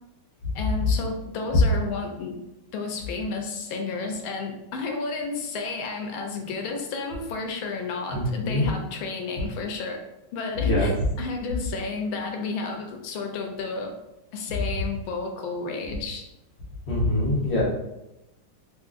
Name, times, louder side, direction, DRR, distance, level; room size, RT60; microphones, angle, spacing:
voice 1, 0.5-2.4 2.7-10.0 10.3-13.9 14.3-16.2, left 4 dB, 80° left, 3 dB, 1.4 m, -32 dB
voice 2, 8.1-8.7 10.6-10.9 16.9-17.6, left 1 dB, 45° left, -5 dB, 0.9 m, -23 dB
3.7 x 3.0 x 2.4 m, 0.92 s
omnidirectional pair, 2.2 m